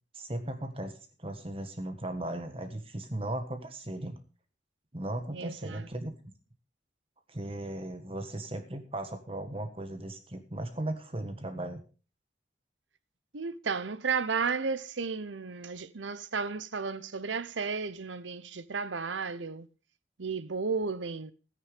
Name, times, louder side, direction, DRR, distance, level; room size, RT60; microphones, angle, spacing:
voice 1, 0.1-4.2 4.9-6.1 7.3-11.8, right 1 dB, 30° right, 1.5 m, -37 dB
voice 2, 5.3-5.9 13.3-19.7 20.2-21.3, right 5 dB, 90° right, 0.9 m, -33 dB
13.5 x 10.0 x 5.2 m
head